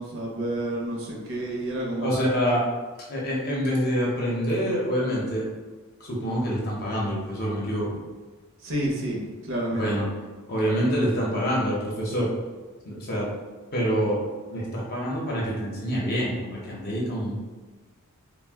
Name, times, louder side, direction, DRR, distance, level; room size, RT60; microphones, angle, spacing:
voice 1, 0.0-2.3 8.6-9.9, right 1 dB, 60° right, -2 dB, 0.6 m, -29 dB
voice 2, 2.0-2.6 3.1-5.5 6.0-7.9 9.7-10.1 10.5-12.3 12.8-13.2 13.7-14.2 14.5-17.3, equal, 45° left, -4 dB, 0.6 m, -26 dB
2.4 x 2.1 x 3.4 m, 1.3 s
head